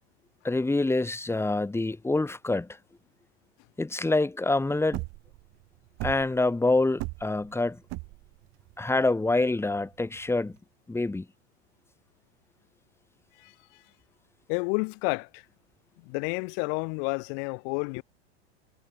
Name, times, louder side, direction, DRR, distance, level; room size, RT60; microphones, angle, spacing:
voice 1, 0.4-2.7 3.8-5.0 6.0-7.8 8.8-10.5 10.9-11.2, left 2 dB, 5° left, 1.5 m, -26 dB
sound 1, 4.7-10.6, right 26 dB, 50° right, 1.7 m, -38 dB
voice 2, 14.5-15.4 16.0-18.0, left 40 dB or more, 50° left, 0.9 m, -30 dB
hypercardioid pair, 90°, 34 cm